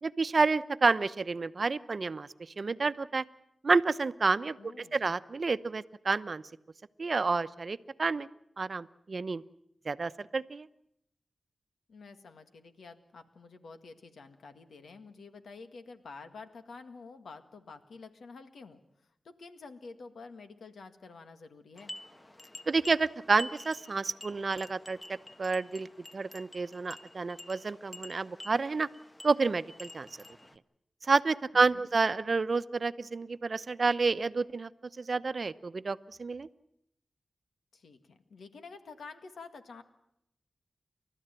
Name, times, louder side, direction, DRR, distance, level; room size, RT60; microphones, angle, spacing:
voice 1, 0.0-3.2 3.6-6.4 7.0-8.3 8.6-9.4 9.8-10.7 22.7-25.9 26.1-28.9 29.2-30.1 31.0-34.7 35.0-36.5, right 4 dB, 60° right, 14 dB, 0.8 m, -29 dB
voice 2, 4.6-5.0 11.9-18.8 19.2-22.0 31.5-31.9 37.7-39.8, left 4 dB, 90° left, 8 dB, 1.8 m, -49 dB
sound 1, 21.8-30.6, left 1 dB, 25° left, 1.1 m, -49 dB
30.0 x 13.0 x 9.1 m, 0.79 s
cardioid pair, 50°, 0 cm